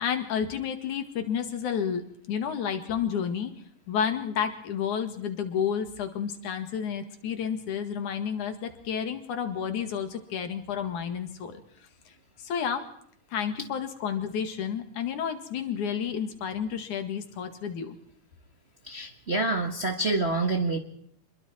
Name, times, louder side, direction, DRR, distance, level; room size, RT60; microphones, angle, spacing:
voice 1, 0.0-3.5 3.9-11.6 12.4-12.9 13.3-18.0, left 7 dB, 90° left, 7 dB, 3.5 m, -31 dB
voice 2, 18.8-20.8, right 2 dB, 35° right, 3 dB, 1.1 m, -27 dB
26.5 x 22.0 x 4.5 m, 0.69 s
omnidirectional pair, 3.4 m